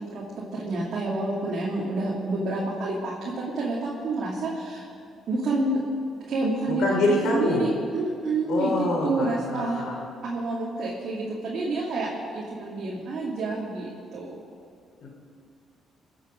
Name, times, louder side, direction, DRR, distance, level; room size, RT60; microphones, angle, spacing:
voice 1, 0.5-4.9 5.3-5.8 6.3-7.0 7.2-8.7 9.0-9.8 10.2-14.3, right 2 dB, 60° right, -6 dB, 2.5 m, -28 dB
voice 2, 6.7-7.7 8.5-10.0 15.0-15.1, left 2 dB, 75° left, 0 dB, 3.2 m, -25 dB
21.5 x 7.6 x 5.2 m, 2.4 s
cardioid pair, 85°, 0 cm